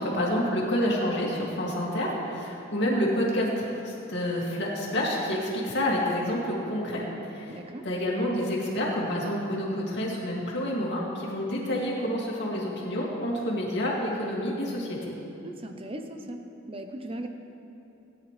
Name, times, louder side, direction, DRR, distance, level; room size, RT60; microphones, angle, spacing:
voice 1, 0.0-15.1, equal, 60° left, -4 dB, 2.5 m, -28 dB
voice 2, 7.5-7.8 15.4-16.4 16.7-17.3, right 1 dB, 30° right, 5 dB, 0.8 m, -38 dB
17.5 x 10.0 x 3.3 m, 3.0 s
head